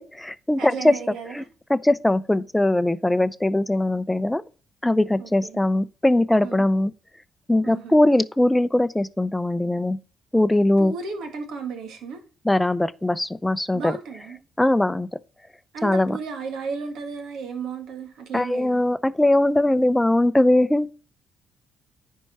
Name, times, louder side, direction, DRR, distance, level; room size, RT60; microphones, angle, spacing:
voice 1, 0.0-0.9 1.3-1.4 1.7-4.4 4.8-6.9 7.5-10.0 10.3-10.9 12.4-14.0 14.6-15.1 15.8-16.2 18.3-20.9, left 1 dB, 10° left, 0.6 m, -20 dB
voice 2, 0.6-1.5 5.2-5.6 6.4-6.7 7.6-7.9 10.8-12.2 13.7-14.4 15.7-18.8, right 5 dB, 75° right, 2.1 m, -34 dB
9.9 x 4.7 x 4.2 m
supercardioid pair, 55°, 0 cm